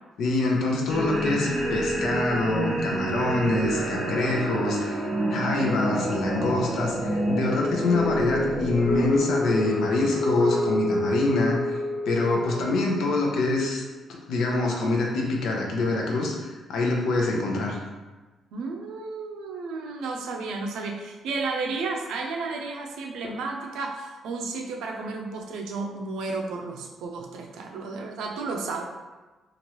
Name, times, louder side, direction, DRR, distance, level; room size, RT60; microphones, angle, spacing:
voice 1, 0.2-11.8 12.1-13.8 14.3-17.8, left 2 dB, 75° left, -1 dB, 0.6 m, -25 dB
sound 1, 0.9-13.6, equal, ahead, 1.2 m, -28 dB
voice 2, 18.5-28.8, right 3 dB, 85° right, 1 dB, 0.5 m, -32 dB
2.9 x 2.5 x 2.9 m, 1.2 s
cardioid pair, 90°, 0 cm